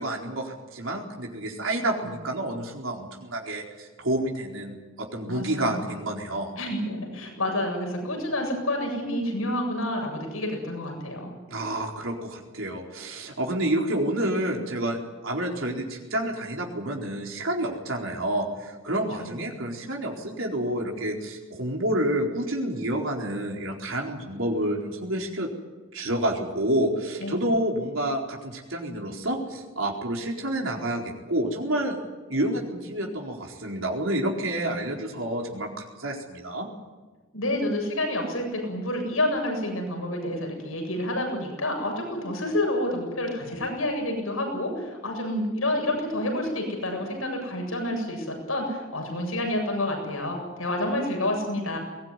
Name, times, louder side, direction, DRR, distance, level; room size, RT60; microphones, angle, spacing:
voice 1, 0.0-6.5 11.5-25.5 25.9-31.0 31.3-32.0 32.3-36.7, right 1 dB, 70° right, 0 dB, 4.3 m, -29 dB
voice 2, 5.3-5.8 6.6-11.3 19.2-19.6 27.2-27.3 37.3-51.8, left 1 dB, 85° left, 3 dB, 7.8 m, -29 dB
22.0 x 19.5 x 9.8 m, 1.3 s
head